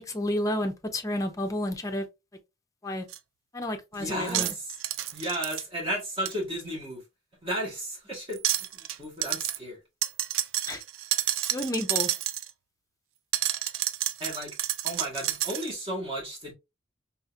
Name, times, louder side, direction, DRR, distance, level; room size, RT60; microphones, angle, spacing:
voice 1, 0.0-2.1 2.8-3.1 3.5-4.5 10.7-10.8 11.5-12.1, left 1 dB, 15° left, 0.6 m, -30 dB
sound 1, 3.1-3.2 4.3-5.6 6.3-6.4 8.3-9.0 9.2-9.6 10.0-12.5 13.3-15.7, right 13 dB, 80° right, 0.3 m, -29 dB
voice 2, 3.9-4.7 5.1-7.0 7.4-8.4 8.7-9.8 14.2-14.6 14.8-16.5, right 1 dB, 30° right, 1.5 m, -34 dB
3.8 x 2.8 x 2.4 m
head